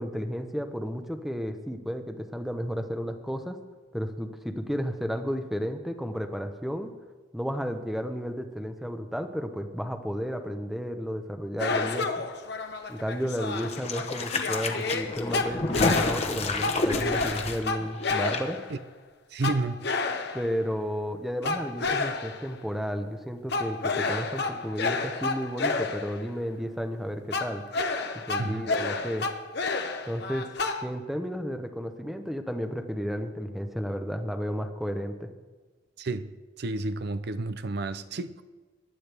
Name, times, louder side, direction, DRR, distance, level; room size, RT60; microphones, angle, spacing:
voice 1, 0.0-3.6 3.9-6.9 7.3-12.1 12.9-18.6 20.3-27.6 28.3-29.3 30.0-30.5 30.8-35.3, equal, ahead, 0.9 m, -32 dB
sound 1, 11.6-18.8 19.4-20.6 21.4-22.5 23.5-26.3 27.3-30.8, left 3 dB, 55° left, 1.0 m, -30 dB
sound 2, 13.6-18.4 18.7-18.8, left 3 dB, 35° left, 1.1 m, -30 dB
voice 2, 19.3-19.9 28.4-28.7 36.0-38.4, right 2 dB, 55° right, 0.5 m, -31 dB
23.5 x 11.0 x 3.5 m
head